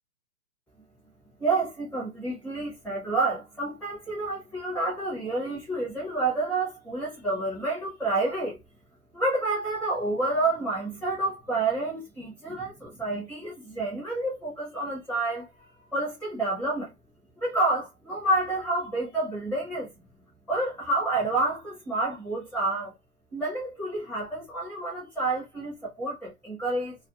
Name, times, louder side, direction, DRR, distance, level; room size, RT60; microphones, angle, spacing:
voice 1, 1.4-8.6 9.1-16.9 17.4-19.9 20.5-23.0 23.3-27.0, right 2 dB, 5° left, 0.4 m, -29 dB
2.5 x 2.1 x 2.7 m
hypercardioid pair, 155°, 44 cm